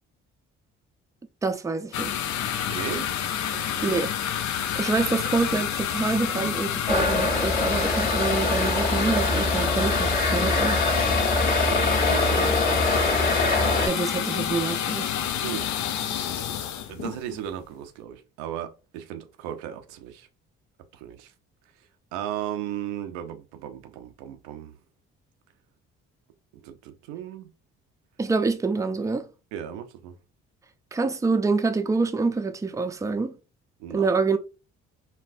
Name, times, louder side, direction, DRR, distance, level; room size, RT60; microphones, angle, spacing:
voice 1, 1.4-2.1 3.8-4.1 4.7-10.8 13.9-15.1 28.2-29.3 30.9-33.4 33.9-34.4, right 4 dB, 10° right, 0.4 m, -26 dB
sound 1, 1.9-17.6, left 9 dB, 60° left, 0.5 m, -29 dB
voice 2, 2.7-3.1 3.5-3.8 10.3-10.5 11.6-12.7 15.4-15.7 16.9-20.3 20.9-21.3 22.1-24.8 26.5-27.5 29.5-30.1 33.8-34.1, right 10 dB, 85° right, 0.5 m, -36 dB
sound 2, 6.9-13.9, left 2 dB, 25° left, 1.3 m, -24 dB
4.0 x 2.1 x 2.5 m
hypercardioid pair, 50°, 33 cm